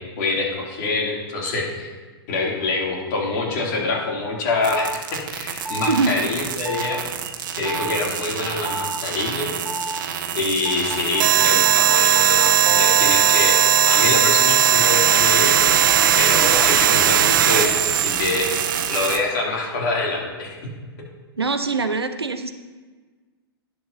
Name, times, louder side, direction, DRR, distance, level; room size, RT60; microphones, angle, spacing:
voice 1, 0.0-1.9 2.3-7.0 7.5-9.9 10.3-15.6 16.2-20.6, left 3 dB, 45° left, -2 dB, 3.0 m, -25 dB
sound 1, 4.6-19.2, right 10 dB, 55° right, 1.0 m, -19 dB
sound 2, 4.7-5.0 5.7-6.0 6.7-7.0 7.7-8.0 8.7-9.0 9.7-10.0 10.7-15.7, right 2 dB, 5° right, 0.5 m, -33 dB
voice 2, 21.4-22.5, right 4 dB, 80° right, 8 dB, 0.7 m, -22 dB
18.0 x 6.5 x 2.9 m, 1.4 s
figure-of-eight pair, 100°, 13 cm